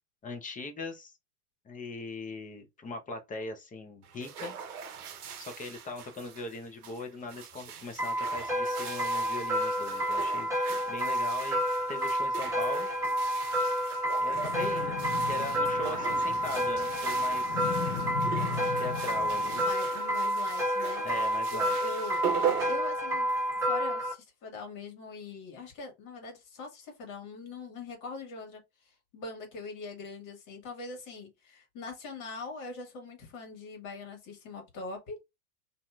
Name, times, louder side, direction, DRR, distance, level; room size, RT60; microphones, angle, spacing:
voice 1, 0.2-1.1 1.6-4.5 5.4-10.5 10.9-11.6 11.9-12.9 14.2-17.7 18.8-19.6 21.0-21.9, left 3 dB, 20° left, 0.8 m, -40 dB
sound 1, 4.0-23.6, right 8 dB, 80° right, 0.8 m, -40 dB
sound 2, 8.0-24.1, equal, 5° right, 1.2 m, -30 dB
sound 3, 14.3-19.7, left 6 dB, 80° left, 0.9 m, -38 dB
voice 2, 19.5-21.0 21.5-28.6 28.8-35.2, left 3 dB, 45° left, 1.7 m, -42 dB
2.7 x 2.6 x 2.3 m
hypercardioid pair, 95°, 44 cm